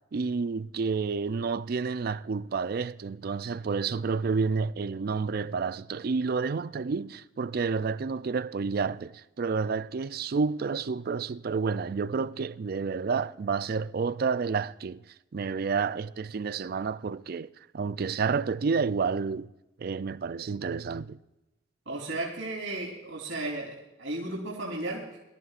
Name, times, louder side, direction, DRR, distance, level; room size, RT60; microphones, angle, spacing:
voice 1, 0.1-15.0 15.3-19.5 19.8-21.2, right 5 dB, 50° right, 0.4 m, -30 dB
voice 2, 21.8-25.2, right 2 dB, 75° right, 3.5 m, -34 dB
23.0 x 14.0 x 2.5 m
head